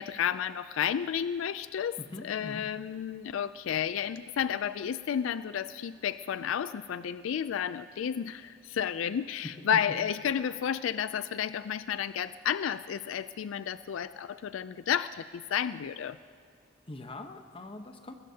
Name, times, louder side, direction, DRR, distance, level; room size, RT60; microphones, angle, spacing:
voice 1, 0.0-16.2, left 8 dB, 85° left, 14 dB, 0.3 m, -32 dB
voice 2, 2.1-2.7 16.9-18.1, left 2 dB, 30° left, 6 dB, 1.0 m, -43 dB
21.0 x 20.5 x 2.8 m, 2.2 s
head